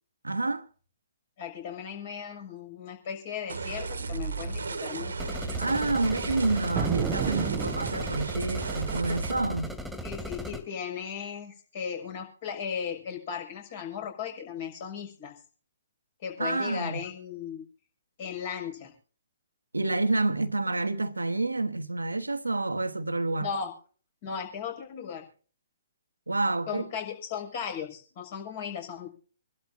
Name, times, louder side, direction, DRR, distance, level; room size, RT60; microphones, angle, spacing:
voice 1, 0.2-0.6 5.6-9.7 16.4-17.0 19.7-23.5 26.3-26.9, right 2 dB, 90° right, 1.2 m, -28 dB
voice 2, 1.4-5.2 10.0-15.4 16.2-17.6 18.2-18.9 23.4-23.7 24.2-25.2 26.7-29.1, left 7 dB, 45° left, 6.4 m, -36 dB
sound 1, 3.5-9.3, right 4 dB, 70° right, 1.5 m, -34 dB
sound 2, 5.2-10.6, left 1 dB, ahead, 2.6 m, -37 dB
sound 3, 6.7-8.5, right 11 dB, 20° right, 0.7 m, -32 dB
27.0 x 12.0 x 2.7 m
figure-of-eight pair, 125°, 0 cm